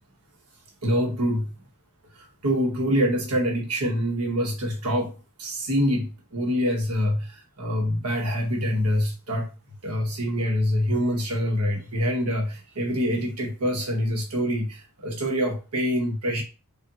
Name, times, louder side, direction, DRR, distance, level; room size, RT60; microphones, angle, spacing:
voice 1, 0.8-1.5 2.4-5.1 5.4-7.3 7.6-9.5 9.8-14.8 15.0-16.4, equal, 85° right, 1 dB, 1.1 m, -25 dB
5.2 x 2.4 x 2.8 m, 0.31 s
head